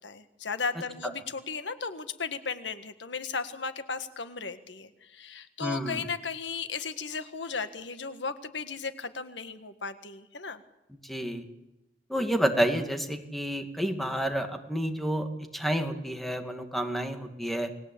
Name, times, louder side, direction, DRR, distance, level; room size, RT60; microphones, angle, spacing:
voice 1, 0.0-10.6, left 5 dB, 90° left, 10 dB, 1.7 m, -35 dB
voice 2, 5.6-6.0 11.0-11.4 12.1-17.7, equal, ahead, 5 dB, 2.5 m, -30 dB
29.5 x 20.0 x 8.6 m, 0.95 s
head